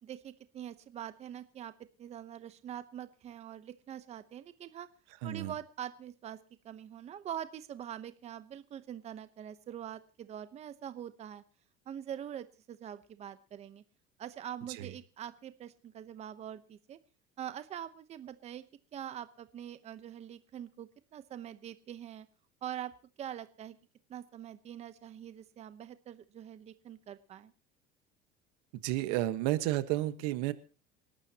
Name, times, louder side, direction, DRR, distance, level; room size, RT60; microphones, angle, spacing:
voice 1, 0.0-1.7 2.0-4.9 5.2-6.4 6.6-11.4 11.9-13.8 14.2-17.0 17.4-18.6 18.9-22.3 22.6-23.8 24.1-27.5, right 10 dB, 35° right, 11 dB, 0.9 m, -44 dB
voice 2, 5.2-5.5 14.8-14.9 28.8-30.5, right 15 dB, 80° right, 11 dB, 1.4 m, -31 dB
28.0 x 12.0 x 2.9 m, 0.34 s
cardioid pair, 135°, 19 cm